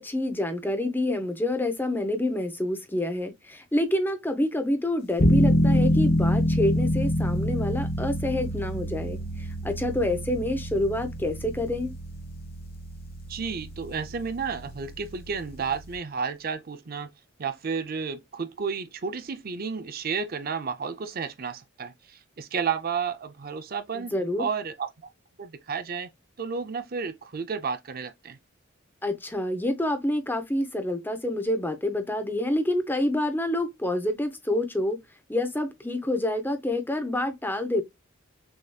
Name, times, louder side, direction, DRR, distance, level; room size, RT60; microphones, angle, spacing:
voice 1, 0.0-11.9 23.9-24.5 29.0-35.0 35.3-37.8, left 1 dB, 10° left, 0.8 m, -27 dB
sound 1, 5.2-15.9, equal, 50° left, 1.2 m, -27 dB
voice 2, 13.3-17.1 17.4-24.1 24.4-24.9 25.4-26.1 26.4-28.4, right 6 dB, 45° right, 0.5 m, -32 dB
6.3 x 2.9 x 2.3 m
head